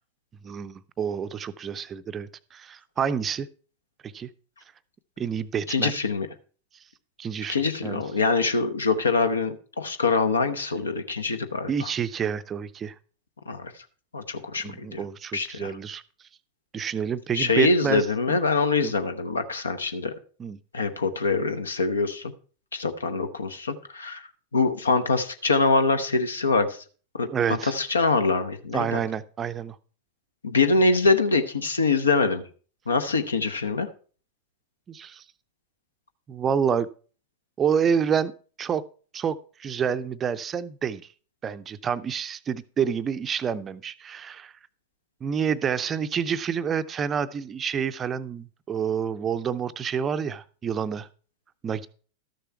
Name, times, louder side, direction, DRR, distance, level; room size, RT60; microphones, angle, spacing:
voice 1, 0.4-3.5 4.0-4.3 5.2-5.9 7.2-7.6 7.8-8.0 11.7-12.9 14.6-16.0 16.7-18.4 18.8-18.9 20.4-20.6 27.3-27.7 28.7-29.8 34.9-35.2 36.3-36.9 37.6-38.3 38.6-38.8 39.1-41.1 41.4-44.5 45.2-51.1 51.6-51.9, right 7 dB, 25° right, 0.5 m, -28 dB
voice 2, 5.7-6.3 7.5-11.9 13.5-13.7 14.1-15.0 15.3-15.7 17.3-20.1 20.7-22.3 22.7-26.8 27.1-29.0 30.4-32.4 32.9-33.9, left 3 dB, 75° left, 0.9 m, -24 dB
13.0 x 6.7 x 4.5 m
figure-of-eight pair, 90°, 0 cm